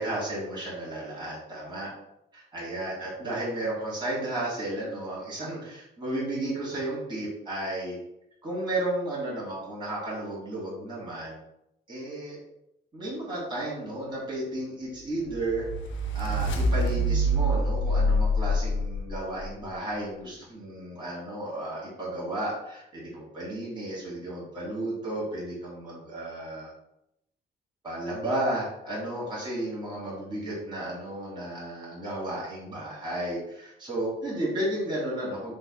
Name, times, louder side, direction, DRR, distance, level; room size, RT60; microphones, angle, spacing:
voice 1, 0.0-1.9 2.3-8.0 8.4-11.4 11.9-12.4 12.9-15.7 16.1-26.7 27.8-35.5, right 1 dB, 25° right, -6 dB, 1.5 m, -33 dB
sound 1, 15.2-19.5, equal, 75° left, 0.5 m, -26 dB
3.4 x 3.2 x 2.2 m, 0.82 s
cardioid pair, 90°, 20 cm